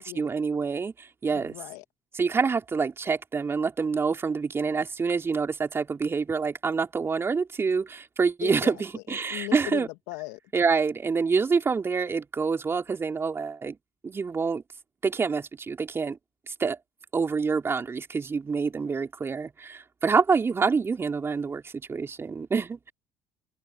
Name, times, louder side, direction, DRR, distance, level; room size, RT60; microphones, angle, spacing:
voice 1, 0.0-1.5 2.2-9.9 10.5-13.8 14.0-14.6 15.0-16.2 16.5-16.8 17.1-22.9, right 5 dB, 30° right, 4.1 m, -27 dB
voice 2, 1.3-1.8 8.4-9.0 9.3-10.4, left 25 dB, 75° left, 2.9 m, -38 dB
hypercardioid pair, 70°, 8 cm